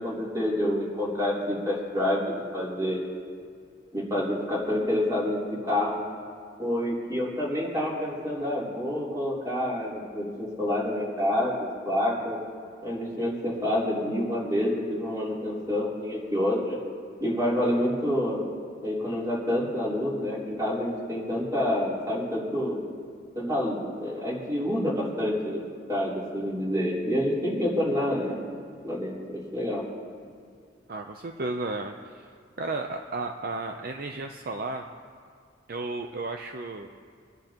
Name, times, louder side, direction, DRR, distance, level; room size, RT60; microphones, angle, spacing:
voice 1, 0.0-3.0 3.9-5.4 5.7-6.0 6.6-12.4 12.8-16.8 17.2-18.4 18.8-22.8 23.3-25.6 25.9-28.4 28.8-29.8, left 1 dB, 20° right, -6 dB, 3.2 m, -28 dB
voice 2, 30.9-32.2 32.6-34.8 35.7-36.9, right 3 dB, 50° right, 4 dB, 0.6 m, -33 dB
24.5 x 11.0 x 2.9 m, 2.2 s
head